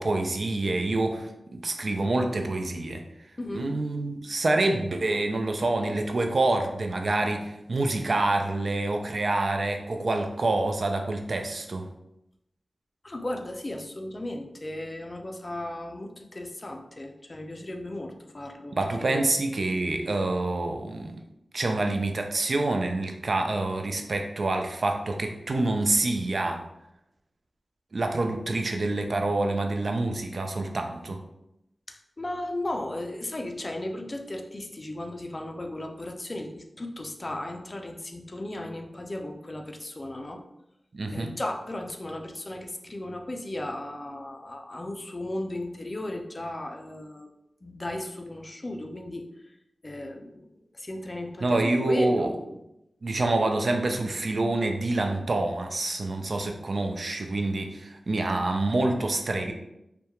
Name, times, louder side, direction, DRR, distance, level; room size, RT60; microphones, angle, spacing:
voice 1, 0.0-3.0 3.5-11.9 18.7-21.1 21.5-26.6 27.9-31.2 40.9-41.3 51.4-52.3 53.0-59.5, right 2 dB, 65° right, 4 dB, 0.3 m, -27 dB
voice 2, 3.4-3.7 13.0-19.2 31.9-40.4 41.1-47.3 47.6-49.3 49.8-50.5 50.7-52.3, left 1 dB, 40° left, 3 dB, 0.4 m, -35 dB
2.2 x 2.1 x 2.9 m, 0.85 s
cardioid pair, 40°, 0 cm